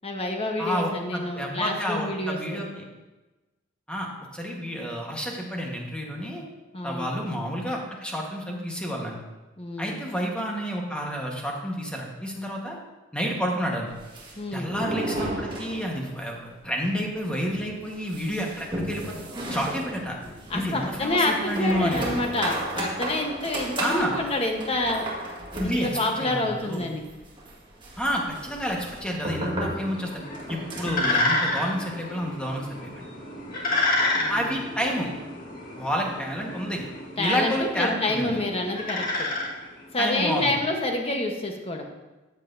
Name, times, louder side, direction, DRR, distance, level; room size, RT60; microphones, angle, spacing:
voice 1, 0.0-2.6 6.7-7.1 9.6-10.0 14.4-14.7 20.5-25.1 25.6-27.1 34.1-34.6 37.2-39.3 39.9-41.8, left 2 dB, 30° left, 2 dB, 1.1 m, -28 dB
voice 2, 0.6-2.8 3.9-6.4 6.8-9.2 9.8-12.8 13.1-13.9 14.5-19.2 19.5-20.2 20.5-22.0 23.8-24.1 25.6-26.9 28.0-30.2 30.5-32.9 34.2-35.1 35.8-36.8 37.2-38.4 40.0-40.5, equal, 5° left, -1 dB, 1.4 m, -29 dB
sound 1, 13.9-16.3 16.5-16.6 16.9-17.0 17.5-31.1, right 1 dB, 25° right, 1.8 m, -34 dB
sound 2, 29.8-40.1, left 2 dB, 45° left, 1.8 m, -30 dB
13.5 x 8.2 x 2.7 m, 1.1 s
head